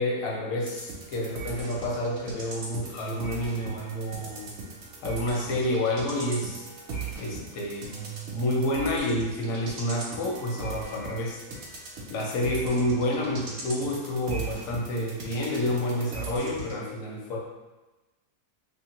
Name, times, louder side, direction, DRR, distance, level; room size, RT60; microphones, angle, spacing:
voice 1, 0.0-4.5 5.0-6.6 7.2-11.4 12.1-17.4, left 1 dB, 65° left, -1 dB, 1.0 m, -29 dB
sound 1, 0.6-16.8, right 3 dB, 65° right, 0.7 m, -40 dB
2.6 x 2.4 x 2.9 m, 1.1 s
omnidirectional pair, 1.6 m